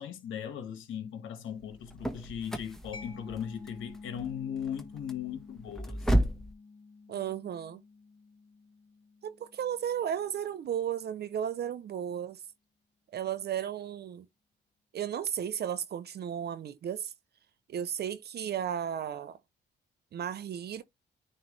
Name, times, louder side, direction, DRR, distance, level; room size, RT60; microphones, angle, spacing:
voice 1, 0.0-6.0, left 8 dB, 80° left, 1.6 m, -38 dB
sound 1, 1.6-6.5, equal, ahead, 1.3 m, -33 dB
Mallet percussion, 2.9-10.3, left 4 dB, 25° left, 2.6 m, -50 dB
voice 2, 7.1-7.8 9.2-12.4 13.1-14.3 14.9-17.1 17.7-19.4 20.1-20.8, right 9 dB, 55° right, 0.6 m, -34 dB
9.5 x 3.3 x 3.2 m
cardioid pair, 90°, 20 cm